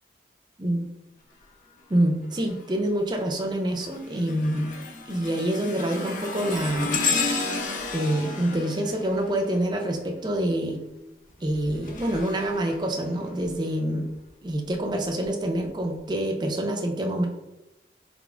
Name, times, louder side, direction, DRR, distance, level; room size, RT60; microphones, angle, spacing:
voice 1, 1.9-4.7 5.1-7.0 7.9-10.8 11.4-14.1 14.4-17.3, right 1 dB, 25° right, 2 dB, 0.5 m, -26 dB
sound 1, 2.3-2.7 3.2-10.0 11.3-13.5 14.1-14.3 15.2-15.3, left 3 dB, 45° left, 0.6 m, -32 dB
4.9 x 3.5 x 2.4 m, 0.98 s
head